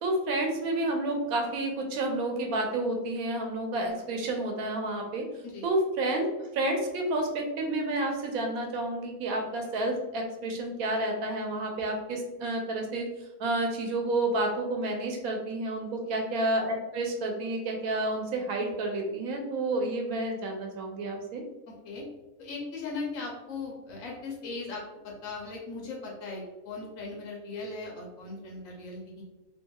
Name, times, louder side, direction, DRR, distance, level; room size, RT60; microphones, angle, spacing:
voice 1, 0.0-5.2 5.6-6.3 6.5-13.1 13.4-21.4, right 2 dB, 85° right, 2 dB, 1.1 m, -30 dB
voice 2, 21.7-22.1 22.4-29.2, left 3 dB, 75° left, -1 dB, 1.0 m, -38 dB
2.8 x 2.6 x 2.2 m, 1.0 s
omnidirectional pair, 1.5 m